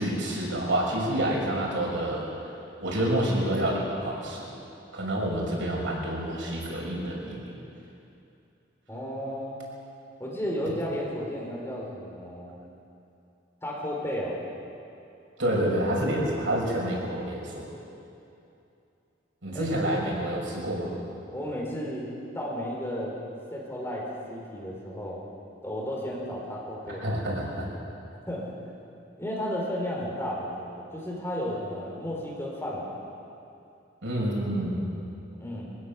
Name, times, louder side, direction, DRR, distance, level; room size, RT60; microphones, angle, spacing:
voice 1, 0.0-2.5 2.8-4.5 4.9-7.5 15.4-17.7 19.4-20.9 26.9-27.6 34.0-34.8, right 1 dB, 90° right, -3 dB, 6.4 m, -28 dB
voice 2, 8.9-9.6 10.2-12.6 13.6-14.4 19.5-19.9 21.3-23.2 23.5-25.2 25.6-27.0 28.3-28.5 29.2-33.0 35.4-35.7, equal, 15° left, -4 dB, 4.4 m, -33 dB
24.0 x 16.0 x 7.2 m, 2.7 s
head